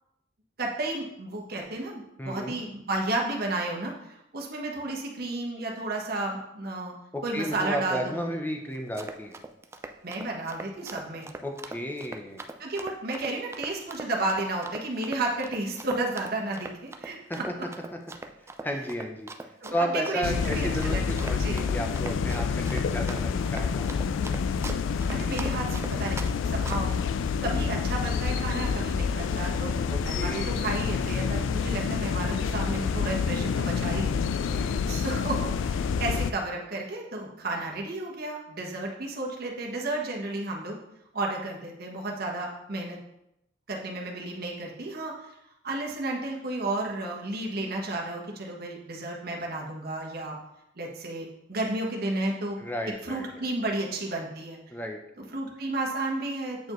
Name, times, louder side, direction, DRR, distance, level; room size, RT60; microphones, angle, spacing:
voice 1, 0.6-6.9 7.2-8.3 10.0-11.3 12.6-17.4 19.6-21.7 25.1-27.1 27.4-29.8 30.0-34.2 34.9-40.8 41.1-43.0 43.7-45.3 45.6-50.4 50.8-52.6 53.0-54.6 55.2-56.7, right 2 dB, 55° right, 0 dB, 1.2 m, -32 dB
voice 2, 2.2-2.6 7.1-9.4 11.4-12.4 17.3-17.5 18.6-19.3 19.7-23.9 29.9-30.7 34.5-34.8 52.6-53.4 54.7-55.0, equal, 10° left, 3 dB, 0.7 m, -33 dB
Run, 8.7-26.3 26.7-27.0, right 2 dB, 15° right, 0.3 m, -40 dB
sound 1, 20.2-36.3, left 6 dB, 85° left, 0.3 m, -28 dB
8.2 x 4.5 x 3.1 m, 0.84 s
head